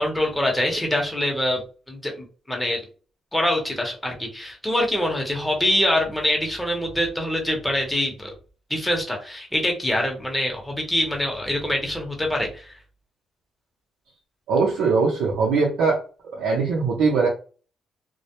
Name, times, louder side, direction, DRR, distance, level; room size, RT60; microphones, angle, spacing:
voice 1, 0.0-1.6 1.9-2.8 3.3-8.3 8.7-12.7, left 1 dB, 5° left, 0 dB, 0.9 m, -24 dB
voice 2, 14.5-16.0 16.4-17.3, right 4 dB, 85° right, -3 dB, 0.6 m, -21 dB
2.2 x 2.0 x 2.8 m, 0.37 s
cardioid pair, 90°, 0 cm